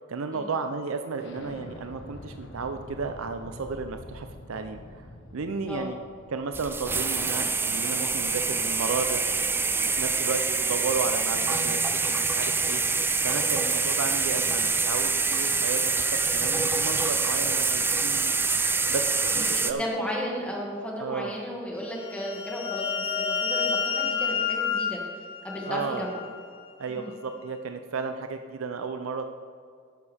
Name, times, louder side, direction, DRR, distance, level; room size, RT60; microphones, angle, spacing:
voice 1, 0.1-5.1 5.3-6.0 6.3-9.2 9.8-11.8 12.1-12.8 13.2-16.0 16.3-18.3 18.9-19.1 19.3-19.8 21.0-21.3 25.7-26.0 26.8-29.3, right 4 dB, 90° right, 7 dB, 0.5 m, -33 dB
Explosion, 1.2-6.7, left 1 dB, 60° left, 1.2 m, -45 dB
sound 1, 6.5-19.7, right 4 dB, 10° right, 0.4 m, -26 dB
voice 2, 19.5-22.9 23.2-25.0 25.4-26.2 26.9-27.1, equal, 5° left, -3 dB, 2.0 m, -34 dB
sound 2, 21.9-26.4, left 6 dB, 25° left, 0.8 m, -30 dB
11.0 x 10.5 x 3.4 m, 2.3 s
head